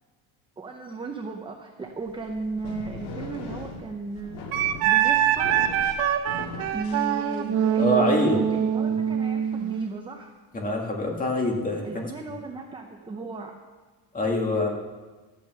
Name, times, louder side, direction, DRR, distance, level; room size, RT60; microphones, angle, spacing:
voice 1, 0.6-4.4 4.8-5.6 6.7-10.3 11.8-13.6, right 3 dB, 10° right, 2 dB, 0.6 m, -35 dB
sound 1, 2.0-7.7, left 2 dB, 85° left, 2.3 m, -39 dB
Wind instrument woodwind instrument, 4.5-9.9, right 9 dB, 85° right, 1.5 m, -24 dB
voice 2, 7.8-8.4 10.5-12.1 14.1-14.7, left 1 dB, 15° left, 0 dB, 1.9 m, -25 dB
13.5 x 9.3 x 6.9 m, 1.3 s
cardioid pair, 170°, 47 cm